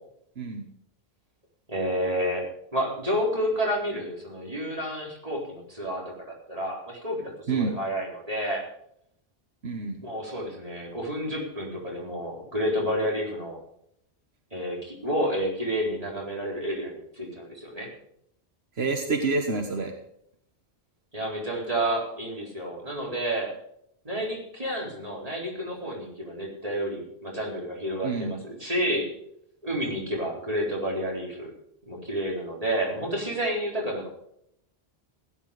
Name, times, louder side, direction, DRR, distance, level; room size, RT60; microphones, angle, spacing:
voice 1, 0.4-0.7 7.5-7.8 9.6-10.0 18.7-19.9 28.0-28.3, right 4 dB, 80° right, 4 dB, 1.6 m, -28 dB
voice 2, 1.7-8.6 10.0-13.6 14.5-17.9 21.1-23.5 24.0-29.1 29.6-31.5 31.9-34.1, equal, 35° right, -2 dB, 4.2 m, -30 dB
16.0 x 10.5 x 5.0 m, 0.72 s
omnidirectional pair, 1.1 m